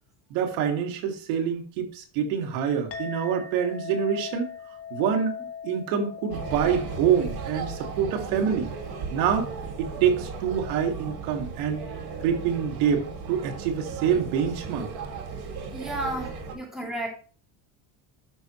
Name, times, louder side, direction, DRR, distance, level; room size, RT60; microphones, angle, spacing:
voice 1, 0.3-4.5 4.9-5.3 5.6-8.7 9.1-9.5 9.8-11.8 12.2-13.0 13.3-14.9, right 7 dB, 85° right, 3 dB, 2.3 m, -26 dB
Chink clink, 2.9-11.6, left 7 dB, 30° left, 1.5 m, -41 dB
sound 1, 6.3-16.5, right 5 dB, 50° right, 2.2 m, -36 dB
voice 2, 15.7-17.1, right 1 dB, ahead, -3 dB, 2.8 m, -32 dB
12.5 x 6.1 x 3.1 m, 0.40 s
cardioid pair, 130°, 49 cm